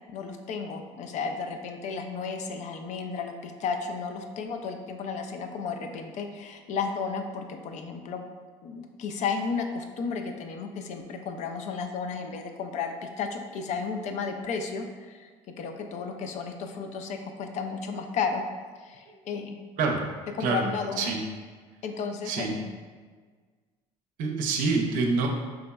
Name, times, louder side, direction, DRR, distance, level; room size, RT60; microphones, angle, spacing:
voice 1, 0.1-8.2 8.6-15.3 15.6-18.4 18.8-19.6 20.4-21.1 21.8-22.6, left 5 dB, 55° left, 5 dB, 0.4 m, -33 dB
voice 2, 24.2-25.3, right 4 dB, 65° right, 2 dB, 0.5 m, -26 dB
3.5 x 2.9 x 2.2 m, 1.5 s
hypercardioid pair, 70°, 15 cm